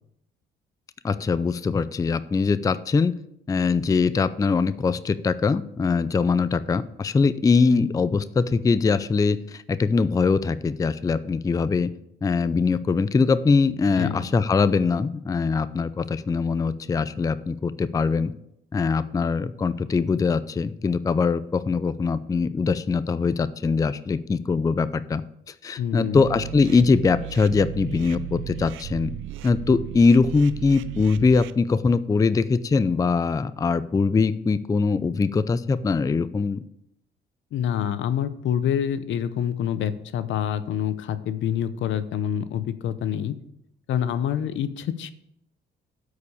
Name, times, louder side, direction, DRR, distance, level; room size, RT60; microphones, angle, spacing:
voice 1, 1.0-3.2 3.5-11.9 12.2-18.3 18.7-25.2 25.5-29.1 29.4-36.6, left 4 dB, 15° left, 15 dB, 0.4 m, -22 dB
voice 2, 14.0-14.3 25.8-26.2 37.5-43.4 43.9-45.1, left 9 dB, 75° left, 14 dB, 0.7 m, -26 dB
sound 1, 26.1-31.5, right 12 dB, 80° right, 0.5 m, -36 dB
8.2 x 4.9 x 6.9 m, 0.78 s
cardioid pair, 90°, 20 cm